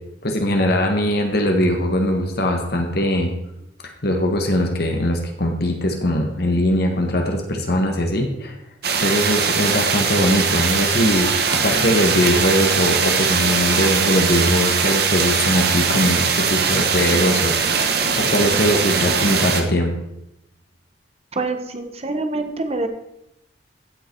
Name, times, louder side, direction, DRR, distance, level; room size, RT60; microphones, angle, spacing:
voice 1, 0.2-3.3 4.0-8.6 9.0-17.6 18.2-19.9, left 1 dB, 60° left, 3 dB, 1.6 m, -21 dB
sound 1, 8.8-19.6, right 5 dB, 60° right, 1.4 m, -20 dB
voice 2, 21.3-22.9, right 2 dB, 35° right, 6 dB, 1.2 m, -25 dB
15.5 x 5.7 x 4.6 m, 0.82 s
head